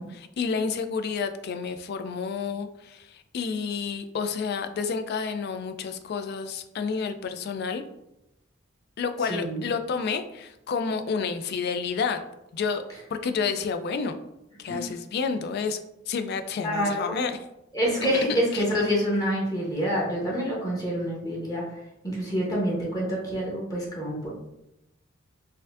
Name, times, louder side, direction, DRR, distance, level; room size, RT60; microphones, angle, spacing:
voice 1, 0.0-7.8 9.0-12.2 12.5-12.8 13.1-14.2 14.6-15.8 16.1-17.4 18.3-18.6, left 5 dB, 55° left, 8 dB, 0.3 m, -30 dB
voice 2, 9.3-9.6 14.7-14.8 16.6-17.2 17.7-21.6 22.0-24.3, equal, 20° left, -4 dB, 0.9 m, -27 dB
4.2 x 2.6 x 2.4 m, 0.86 s
head